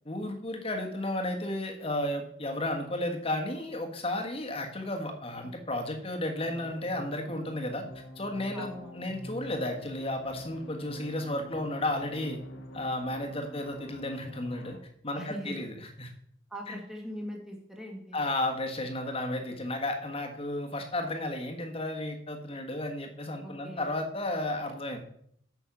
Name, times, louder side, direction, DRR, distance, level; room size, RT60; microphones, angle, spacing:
voice 1, 0.0-7.8 8.2-8.7 8.9-12.4 12.7-14.8 15.0-16.1 16.7-16.8 18.1-25.0, left 1 dB, 30° left, 3 dB, 1.4 m, -33 dB
sound 1, 6.3-14.8, left 1 dB, 80° left, 1.2 m, -46 dB
voice 2, 8.5-9.0 15.1-15.7 16.5-18.2 23.4-23.9, equal, 5° right, 0 dB, 1.9 m, -41 dB
8.9 x 6.1 x 5.9 m, 0.68 s
head